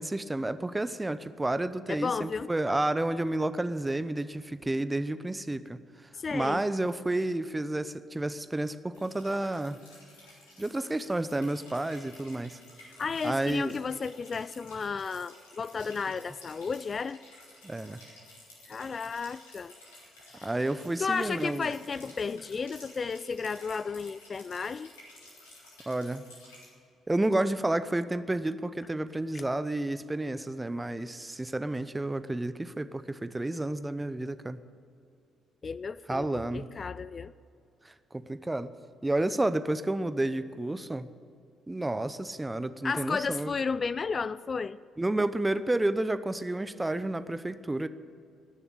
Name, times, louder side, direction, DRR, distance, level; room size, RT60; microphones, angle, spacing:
voice 1, 0.0-9.8 10.6-12.6 13.2-13.8 17.6-18.0 20.4-21.7 25.9-26.2 27.1-34.6 36.1-36.7 37.8-38.7 39.0-41.1 41.7-43.5 45.0-47.9, right 2 dB, 15° right, 13 dB, 0.8 m, -30 dB
voice 2, 1.9-2.5 6.1-6.6 13.0-17.2 18.7-19.7 20.3-20.4 21.0-24.9 29.3-29.4 35.6-37.3 42.8-44.8, left 5 dB, 40° left, 17 dB, 0.3 m, -33 dB
sound 1, 8.9-26.7, left 1 dB, 80° left, 3.7 m, -53 dB
19.0 x 7.0 x 8.8 m, 2.5 s
hypercardioid pair, 45°, 0 cm